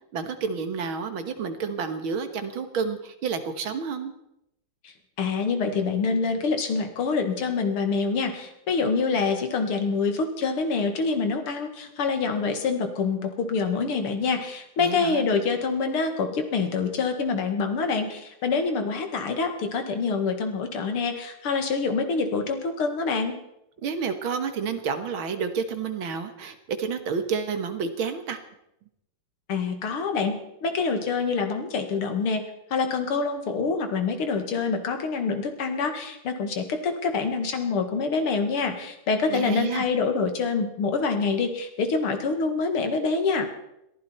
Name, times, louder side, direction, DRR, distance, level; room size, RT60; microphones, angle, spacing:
voice 1, 0.1-4.1 14.8-15.3 23.8-28.4 39.3-39.9, right 5 dB, 70° right, 9 dB, 2.2 m, -30 dB
voice 2, 5.2-23.4 29.5-30.3 30.6-32.4 32.7-43.5, left 4 dB, 85° left, 6 dB, 2.7 m, -26 dB
21.5 x 15.0 x 4.4 m, 0.82 s
omnidirectional pair, 2.4 m